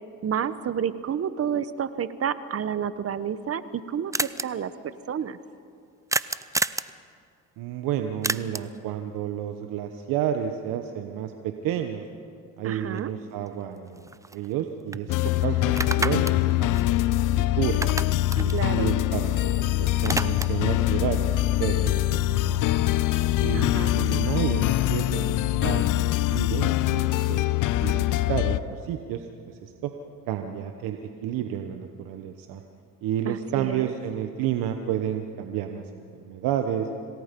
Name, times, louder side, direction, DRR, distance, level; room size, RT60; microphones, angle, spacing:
voice 1, 0.2-5.4 12.6-13.1 18.5-18.9 23.5-24.0 33.3-33.9, right 8 dB, 45° right, 14 dB, 1.1 m, -30 dB
sound 1, 3.4-3.5 3.7-3.8 4.1-4.4 6.1-6.9 8.2-8.8 13.0-13.1 13.5-14.6 14.9-15.0 15.6-17.4 17.7-19.5 19.8-20.7, right 2 dB, 10° right, 0.5 m, -30 dB
voice 2, 7.6-12.0 12.6-15.2 15.4-15.6 15.8-17.9 18.4-19.7 20.0-21.3 21.6-22.8 23.4-27.4 27.8-29.9 30.3-32.6 33.0-36.9, right 10 dB, 80° right, 6 dB, 1.1 m, -31 dB
sound 2, 15.1-28.6, left 15 dB, 65° left, 0.7 m, -24 dB
27.0 x 18.5 x 5.3 m, 2.4 s
supercardioid pair, 80°, 33 cm